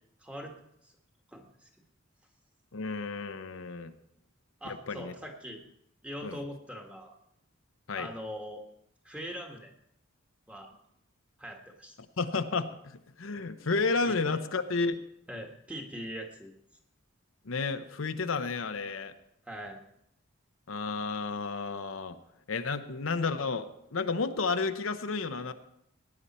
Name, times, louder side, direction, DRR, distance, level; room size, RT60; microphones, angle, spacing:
voice 1, 0.2-0.5 1.3-1.7 4.6-5.6 6.0-7.1 7.9-8.6 9.0-9.7 10.5-10.7 11.4-11.9 14.0-14.1 15.3-16.5 19.4-19.8, equal, 5° right, 1 dB, 1.5 m, -41 dB
voice 2, 2.7-3.9 4.6-5.1 6.2-6.4 7.9-8.1 12.2-15.0 17.4-19.1 20.7-22.2 22.5-25.5, left 4 dB, 85° left, 8 dB, 0.8 m, -32 dB
18.0 x 9.7 x 4.3 m, 0.75 s
head